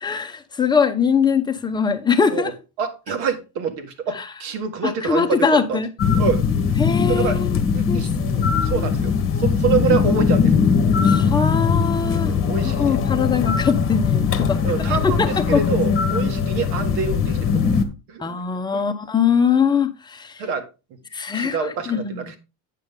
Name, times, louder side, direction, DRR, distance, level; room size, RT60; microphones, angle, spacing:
voice 1, 0.0-2.5 5.0-5.9 6.8-7.5 7.9-8.0 8.5-8.9 11.0-12.3 12.8-14.6 14.9-15.6 18.2-20.4 21.1-21.6 21.9-22.3, left 6 dB, 10° left, 0.7 m, -22 dB
voice 2, 2.8-5.8 6.1-6.4 7.1-7.4 7.7-10.7 12.3-13.0 14.6-17.8 18.1-18.2 18.7-18.8 20.4-20.7 21.3-22.4, right 6 dB, 75° right, 1.8 m, -26 dB
sound 1, 6.0-17.8, left 6 dB, 30° left, 1.1 m, -20 dB
9.1 x 7.0 x 3.7 m
cardioid pair, 160°, 43 cm